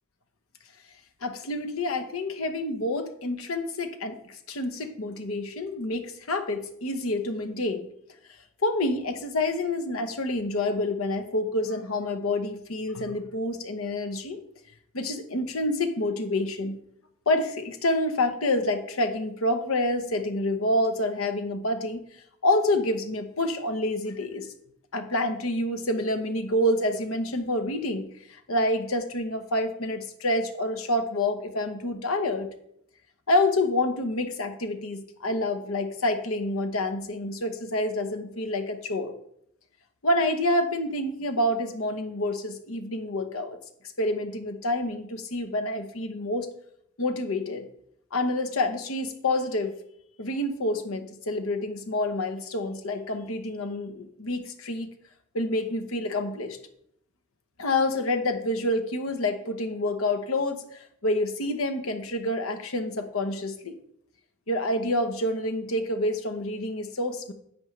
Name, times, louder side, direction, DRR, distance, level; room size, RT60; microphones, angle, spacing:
voice 1, 1.2-7.9 8.6-14.4 14.9-16.8 17.3-22.0 22.4-24.5 24.9-32.5 33.3-39.1 40.0-43.6 44.0-46.5 47.0-47.7 48.1-49.7 50.2-54.9 55.3-56.6 57.6-63.7 64.5-67.3, left 1 dB, 80° left, 8 dB, 1.0 m, -28 dB
10.5 x 7.9 x 3.3 m, 0.71 s
head